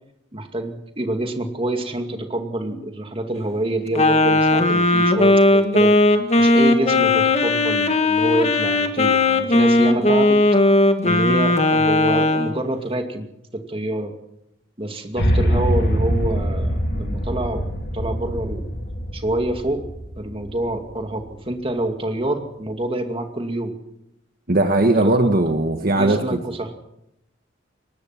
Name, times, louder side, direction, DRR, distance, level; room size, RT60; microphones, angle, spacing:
voice 1, 0.3-5.9 6.3-10.4 11.0-13.3 13.5-14.1 14.8-17.7 17.9-18.6 19.1-19.8 20.2-23.8 25.0-25.3 25.8-26.8, right 1 dB, 30° right, 5 dB, 2.4 m, -26 dB
Wind instrument woodwind instrument, 4.0-12.6, left 2 dB, 35° left, 1.7 m, -17 dB
sound 1, 15.2-21.3, equal, 60° left, 2.9 m, -23 dB
voice 2, 24.5-26.4, right 2 dB, 50° right, 5 dB, 1.5 m, -18 dB
22.5 x 19.5 x 6.0 m, 0.82 s
head